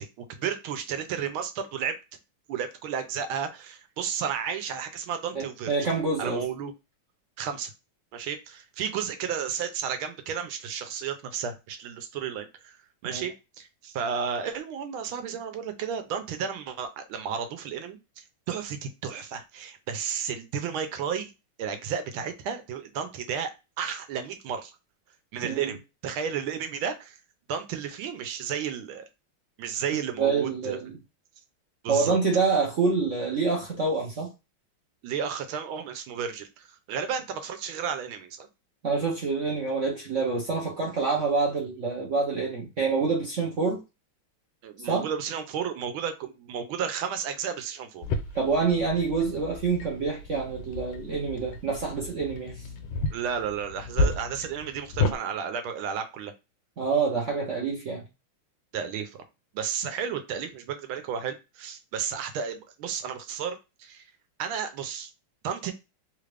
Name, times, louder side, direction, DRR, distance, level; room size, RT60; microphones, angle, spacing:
voice 1, 0.0-2.0 2.5-5.9 6.2-6.7 7.4-7.7 8.1-12.8 13.0-21.3 21.6-23.5 23.8-24.8 25.3-27.2 27.5-29.1 29.6-30.8 31.8-32.2 35.0-38.5 44.6-48.0 53.1-56.3 58.7-59.2 59.5-64.1 64.4-65.1 65.4-65.7, right 7 dB, 85° right, 1.5 m, -33 dB
voice 2, 5.4-6.4 13.0-13.2 25.4-25.7 30.2-30.9 31.9-34.3 38.8-43.8 44.9-45.1 48.3-52.6 54.0-54.1 56.8-58.0, right 4 dB, 60° right, 0.8 m, -27 dB
sound 1, 48.0-55.2, left 2 dB, 85° left, 1.5 m, -32 dB
3.6 x 2.5 x 3.2 m
omnidirectional pair, 2.3 m